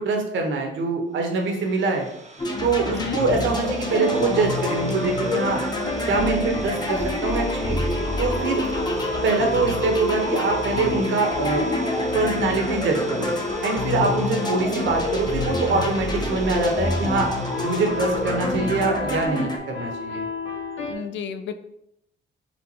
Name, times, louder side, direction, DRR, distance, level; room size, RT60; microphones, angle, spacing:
voice 1, 0.0-2.1 2.6-5.6 6.1-7.8 8.2-8.6 9.2-11.7 12.1-13.3 13.6-17.3 17.6-20.2, right 3 dB, 70° right, 2 dB, 1.1 m, -24 dB
Idling, 1.2-19.0, right 2 dB, 35° right, 0.7 m, -41 dB
sound 1, 2.4-19.6, left 1 dB, 20° left, 0.8 m, -27 dB
sound 2, 3.9-20.9, left 1 dB, 90° left, 1.3 m, -32 dB
voice 2, 8.6-9.2 14.1-14.6 20.8-21.5, left 7 dB, 70° left, 10 dB, 0.4 m, -33 dB
4.4 x 2.5 x 4.2 m, 0.76 s
cardioid pair, 90°, 20 cm